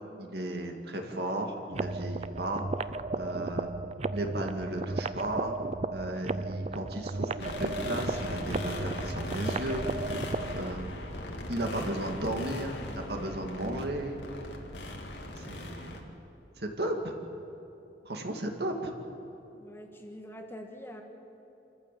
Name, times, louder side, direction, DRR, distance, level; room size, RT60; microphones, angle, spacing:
voice 1, 0.2-2.7 3.1-3.7 4.1-5.5 5.9-9.8 10.5-10.9 11.5-14.2 15.4-16.0 16.6-17.1 18.0-18.9, right 1 dB, 65° right, 3 dB, 2.2 m, -35 dB
sound 1, 1.7-10.7, right 3 dB, 35° right, 0.5 m, -34 dB
sound 2, 7.4-16.0, left 1 dB, 75° left, 2.4 m, -38 dB
voice 2, 19.5-21.0, equal, 15° left, 3 dB, 1.6 m, -45 dB
27.0 x 14.5 x 8.5 m, 2.9 s
head